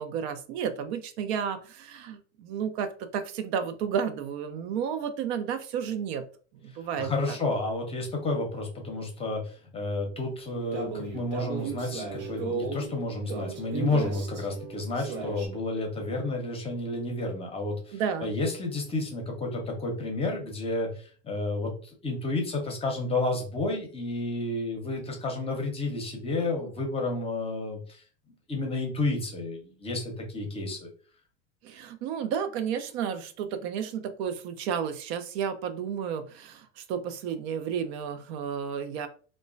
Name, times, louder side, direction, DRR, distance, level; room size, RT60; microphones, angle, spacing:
voice 1, 0.0-6.2 6.6-7.4 17.9-18.3 31.6-39.1, right 7 dB, 65° right, 9 dB, 0.5 m, -32 dB
voice 2, 7.0-28.0 28.5-30.9, left 2 dB, 15° left, 2 dB, 0.7 m, -31 dB
sound 1, 10.5-15.5, right 4 dB, 80° right, 1.0 m, -35 dB
2.9 x 2.2 x 2.4 m, 0.40 s
supercardioid pair, 120°, 35 cm